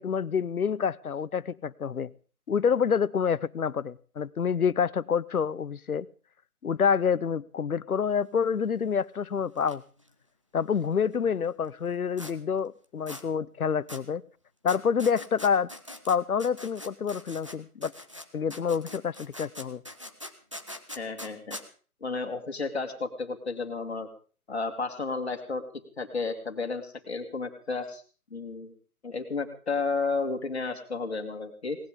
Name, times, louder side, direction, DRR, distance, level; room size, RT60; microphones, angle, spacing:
voice 1, 0.0-2.1 2.5-6.1 6.6-9.8 10.5-14.2 14.6-15.7 16.1-17.9 18.3-19.8, left 6 dB, 70° left, 19 dB, 0.8 m, -27 dB
sound 1, 9.6-9.7 10.0-10.1 12.2-12.3 13.1-13.2 13.9-14.0 14.7-17.6 17.8-21.6, left 1 dB, 20° right, 0.7 m, -42 dB
voice 2, 20.9-21.6 22.0-24.1 24.5-25.6 26.0-28.0 28.3-28.7 29.0-31.8, left 4 dB, 45° left, 6 dB, 2.2 m, -32 dB
18.5 x 18.5 x 3.7 m, 0.39 s
figure-of-eight pair, 165°, 45 cm